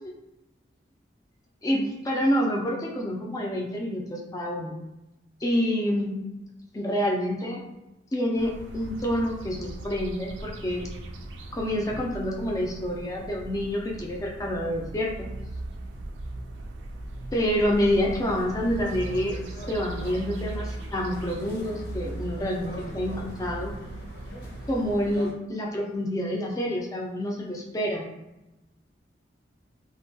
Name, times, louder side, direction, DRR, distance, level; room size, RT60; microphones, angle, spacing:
voice 1, 1.6-4.8 5.4-6.2 6.7-7.6 8.1-10.9 11.5-15.3 17.3-19.4 19.7-23.7 24.7-28.1, equal, 20° left, -1 dB, 0.3 m, -27 dB
sound 1, 8.4-25.2, right 1 dB, 75° right, 0.3 m, -38 dB
sound 2, 17.7-25.3, equal, 65° left, 0.6 m, -44 dB
2.7 x 2.2 x 2.6 m, 0.96 s
head